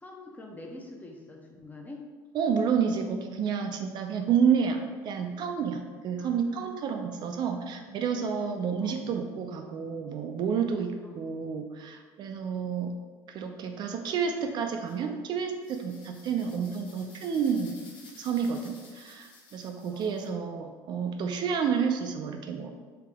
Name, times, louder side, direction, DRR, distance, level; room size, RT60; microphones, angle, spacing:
voice 1, 0.0-2.1 6.2-7.8 8.8-9.1 11.0-11.3 16.4-16.8 19.9-20.6, left 2 dB, 20° left, 0 dB, 0.7 m, -47 dB
voice 2, 2.3-4.8 5.0-13.0 13.3-17.8 18.2-22.7, right 6 dB, 55° right, 5 dB, 0.4 m, -30 dB
sound 1, 14.8-15.0 15.6-20.3, left 3 dB, 60° left, 1.0 m, -54 dB
3.5 x 2.8 x 3.4 m, 1.4 s
supercardioid pair, 80°, 9 cm